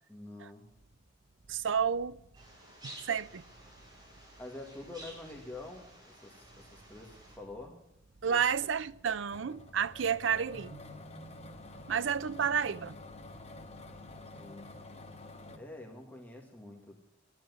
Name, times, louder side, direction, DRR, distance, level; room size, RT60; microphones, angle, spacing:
voice 1, 0.1-0.7 4.4-7.8 8.2-8.4 14.4-14.7 15.5-17.0, left 2 dB, 10° left, 1.8 m, -47 dB
sound 1, 0.6-14.9, right 2 dB, 45° right, 1.0 m, -61 dB
voice 2, 1.5-2.2 2.8-3.4 8.2-10.8 11.9-13.0, right 7 dB, 75° right, 0.5 m, -31 dB
sound 2, 2.3-7.4, right 1 dB, 25° right, 6.1 m, -53 dB
sound 3, 9.3-15.6, left 2 dB, 35° left, 1.6 m, -48 dB
13.5 x 11.0 x 9.4 m
head